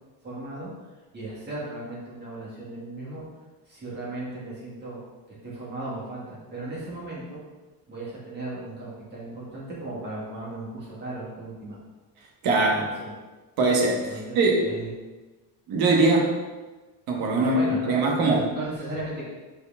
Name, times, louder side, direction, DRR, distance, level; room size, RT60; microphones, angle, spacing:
voice 1, 0.2-0.7 1.1-3.2 3.7-5.0 5.3-7.4 7.9-11.8 12.7-13.1 14.1-14.9 17.4-17.9 18.2-19.3, right 2 dB, 25° right, -7 dB, 2.2 m, -36 dB
voice 2, 12.4-12.9 13.6-14.1 14.3-14.7 15.7-16.3 17.1-18.5, right 2 dB, 50° right, 0 dB, 1.4 m, -21 dB
6.3 x 5.2 x 3.6 m, 1.2 s
cardioid pair, 160°, 45 cm